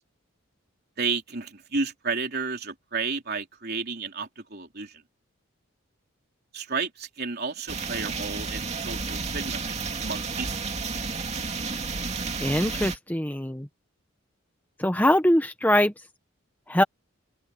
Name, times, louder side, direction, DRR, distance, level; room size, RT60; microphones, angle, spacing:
voice 1, 1.0-5.0 6.5-10.6, right 4 dB, 50° right, 3.7 m, -32 dB
sound 1, 7.7-13.0, right 4 dB, 30° right, 2.4 m, -31 dB
voice 2, 12.4-13.7 14.8-15.9 16.7-16.8, left 1 dB, 10° left, 1.0 m, -22 dB
open air
head